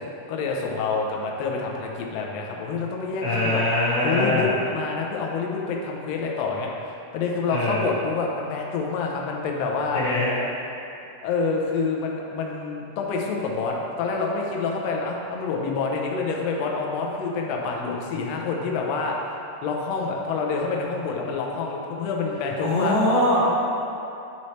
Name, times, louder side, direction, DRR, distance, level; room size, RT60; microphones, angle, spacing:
voice 1, 0.0-3.6 4.0-6.7 7.1-10.0 11.2-19.4 19.6-23.0, left 4 dB, 85° left, 0 dB, 1.4 m, -27 dB
voice 2, 3.2-4.5 7.4-7.8 9.9-10.4 22.6-23.4, left 1 dB, 60° left, -7 dB, 2.0 m, -22 dB
9.6 x 4.1 x 3.2 m, 2.7 s
omnidirectional pair, 3.9 m